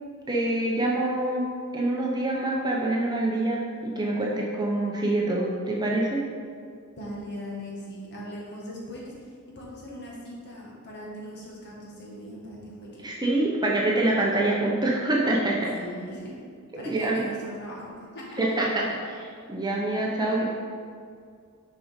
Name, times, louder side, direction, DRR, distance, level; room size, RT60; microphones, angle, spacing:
voice 1, 0.3-1.4 1.7-6.2 13.0-15.7 16.9-17.2 18.4-20.5, right 2 dB, 20° right, -3 dB, 0.9 m, -26 dB
voice 2, 7.0-13.1 15.7-16.3 16.7-18.6, equal, 50° left, -4 dB, 1.8 m, -40 dB
6.8 x 5.1 x 5.2 m, 2.2 s
head